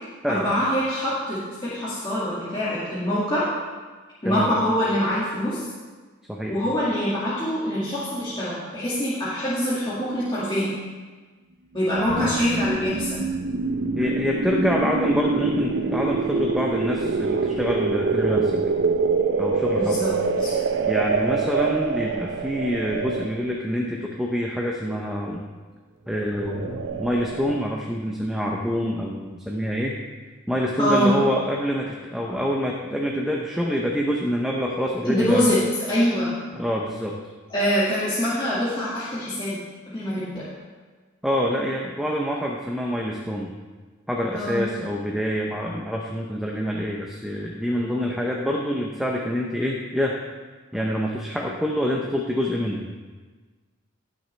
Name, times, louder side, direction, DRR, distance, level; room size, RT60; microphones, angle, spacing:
voice 1, 0.3-3.5 4.2-5.7 6.5-10.7 11.7-13.2 19.7-20.1 20.4-20.5 30.8-31.1 35.0-35.6 35.9-36.3 37.5-39.6 39.9-40.4 44.3-44.6, equal, 20° left, -10 dB, 2.0 m, -24 dB
sound 1, 11.9-23.5 26.3-27.7, right 4 dB, 55° right, 0.5 m, -25 dB
voice 2, 14.0-18.7 19.4-20.0 20.9-25.4 26.1-30.0 30.5-35.5 36.5-37.1 41.2-43.5 44.1-50.1 50.7-52.8, equal, ahead, -1 dB, 0.7 m, -26 dB
18.0 x 6.0 x 3.3 m, 1.4 s
head